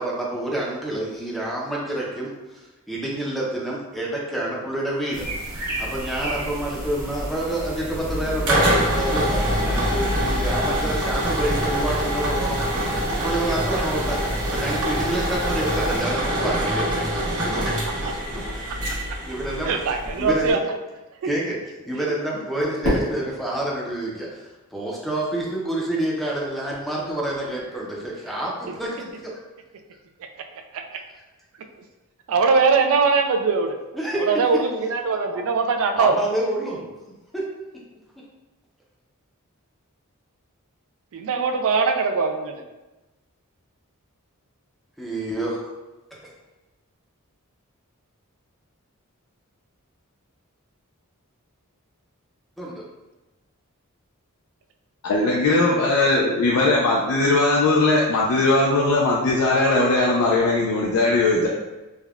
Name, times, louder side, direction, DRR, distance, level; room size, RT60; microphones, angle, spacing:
voice 1, 0.0-12.6 13.1-14.2 14.4-16.9 17.4-17.8 18.3-18.6 19.3-19.7 20.2-20.6 21.2-21.6 21.9-29.4 33.9-34.4 35.3-35.5 35.9-36.9 37.3-37.5 45.0-45.7 46.2-46.3 52.6-52.9, right 1 dB, ahead, -4 dB, 0.5 m, -28 dB
sound 1, 5.1-16.0, right 1 dB, 40° right, 0.8 m, -34 dB
sound 2, 8.0-20.5, equal, 85° right, 0.9 m, -25 dB
voice 2, 19.6-20.6 30.7-30.8 32.3-33.8 34.2-36.1 41.1-42.6, right 4 dB, 65° right, 5 dB, 0.3 m, -21 dB
Fireworks, 22.8-25.1, equal, 85° left, 1.1 m, -29 dB
voice 3, 55.0-61.5, left 2 dB, 70° left, -3 dB, 0.4 m, -19 dB
3.4 x 2.1 x 2.3 m, 1.1 s
head